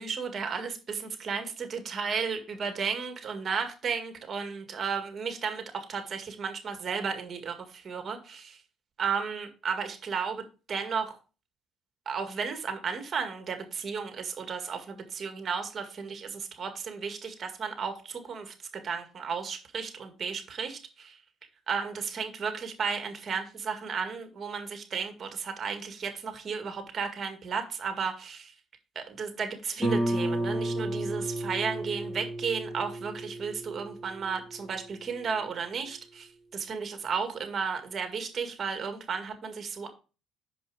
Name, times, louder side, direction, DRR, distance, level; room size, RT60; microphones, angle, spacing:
voice 1, 0.0-8.6 9.0-11.1 12.1-21.2 21.7-28.5 29.0-39.9, right 6 dB, 45° right, 6 dB, 1.9 m, -34 dB
Guitar, 29.8-35.2, right 1 dB, 10° left, 2.0 m, -33 dB
6.3 x 5.2 x 4.8 m, 0.34 s
supercardioid pair, 80°, 0 cm